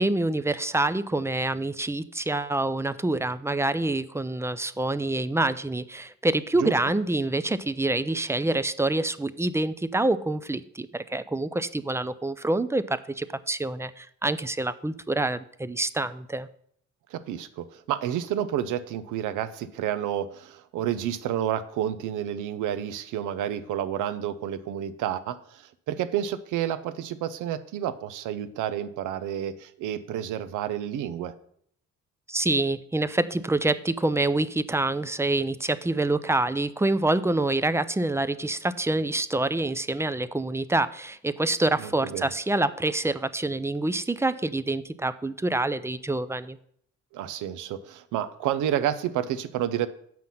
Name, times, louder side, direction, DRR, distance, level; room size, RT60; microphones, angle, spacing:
voice 1, 0.0-16.5 32.3-46.6, right 2 dB, 10° right, 14 dB, 0.4 m, -26 dB
voice 2, 17.1-31.3 41.8-42.3 47.1-49.9, right 10 dB, 90° right, 13 dB, 0.7 m, -30 dB
7.6 x 5.8 x 5.5 m, 0.66 s
cardioid pair, 90°, 30 cm